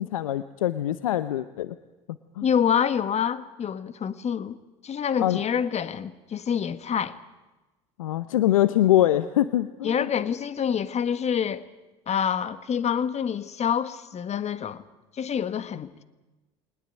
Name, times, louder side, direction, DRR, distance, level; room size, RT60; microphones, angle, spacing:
voice 1, 0.0-1.8 2.4-2.5 5.2-5.4 8.0-10.1, left 13 dB, 85° left, 14 dB, 0.7 m, -23 dB
voice 2, 2.4-4.6 4.8-7.2 9.8-11.6 12.1-14.8 15.2-16.0, left 8 dB, 40° left, 14 dB, 1.6 m, -27 dB
21.5 x 19.5 x 9.3 m, 1.1 s
hypercardioid pair, 70°, 17 cm